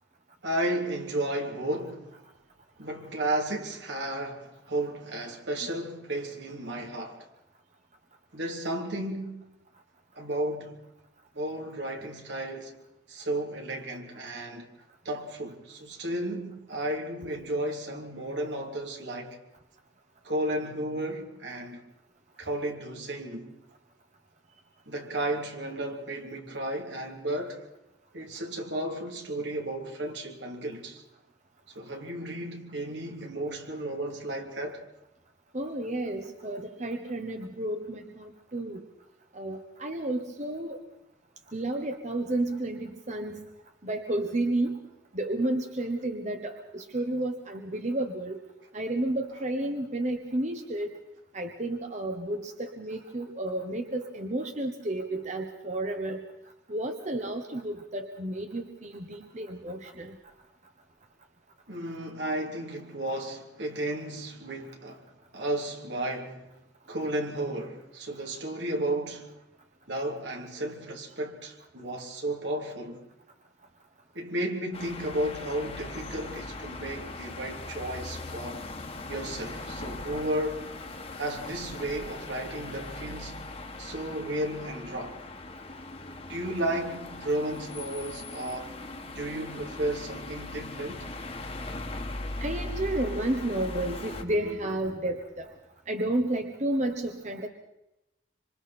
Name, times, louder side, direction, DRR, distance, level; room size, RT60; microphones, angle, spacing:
voice 1, 0.4-2.1 2.8-7.3 8.3-9.3 10.1-10.8 11.3-12.8 13.1-14.7 15.0-19.4 20.2-21.8 22.4-23.5 24.9-27.6 28.1-31.0 31.7-34.9 61.7-65.1 65.3-66.5 66.9-69.3 69.9-73.0 74.1-78.7 79.1-80.7 81.2-83.4 83.8-85.2 86.2-88.7 89.1-91.1, right 1 dB, 75° right, 3.2 m, -33 dB
voice 2, 35.5-38.8 39.3-40.8 41.5-43.4 43.8-44.8 45.1-48.4 48.7-51.0 51.3-56.2 56.7-60.2 89.2-89.5 92.4-95.5 95.9-97.5, right 1 dB, 40° right, 1.2 m, -31 dB
sound 1, 74.7-94.2, left 2 dB, 30° left, 1.7 m, -39 dB
26.5 x 26.0 x 4.4 m
head